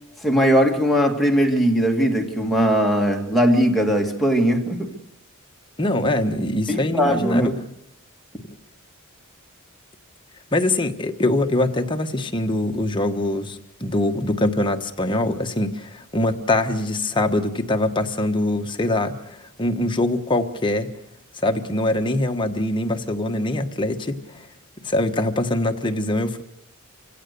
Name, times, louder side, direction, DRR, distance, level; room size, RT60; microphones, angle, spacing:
voice 1, 0.2-4.9 6.7-7.6, equal, ahead, 2.2 m, -19 dB
voice 2, 5.8-7.6 8.4-8.5 10.5-20.9 21.4-24.5 24.8-26.4, left 1 dB, 20° left, 1.2 m, -23 dB
26.0 x 16.5 x 6.8 m
head